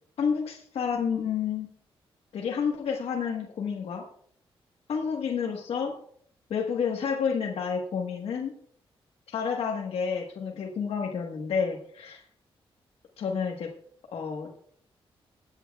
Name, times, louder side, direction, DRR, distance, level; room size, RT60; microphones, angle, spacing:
voice 1, 0.2-1.7 2.3-4.1 4.9-5.9 6.5-8.5 9.3-12.2 13.2-13.7 14.1-14.6, left 6 dB, 90° left, 0 dB, 1.3 m, -30 dB
23.5 x 8.8 x 2.3 m, 0.62 s
wide cardioid pair, 170°, 10 cm